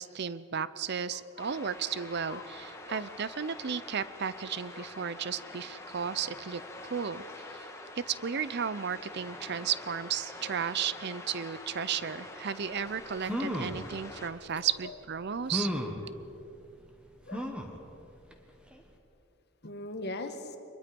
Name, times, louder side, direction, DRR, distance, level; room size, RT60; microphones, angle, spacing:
voice 1, 0.0-6.6 6.9-7.6 8.0-15.7, right 7 dB, 55° right, 16 dB, 0.6 m, -34 dB
voice 2, 1.1-1.7 2.3-2.4 2.9-3.1 4.7-4.9 10.4-10.5 14.8-15.0 17.3-17.5 19.6-20.6, left 2 dB, 50° left, 7 dB, 1.6 m, -41 dB
sound 1, 1.4-14.3, left 2 dB, 15° left, 1.9 m, -46 dB
sound 2, 12.8-12.9 13.2-13.8 14.6-14.7 15.5-16.0 17.3-17.8 18.3-18.4 18.7-18.8, equal, 5° right, 1.6 m, -33 dB
25.0 x 21.5 x 5.3 m, 2.8 s
head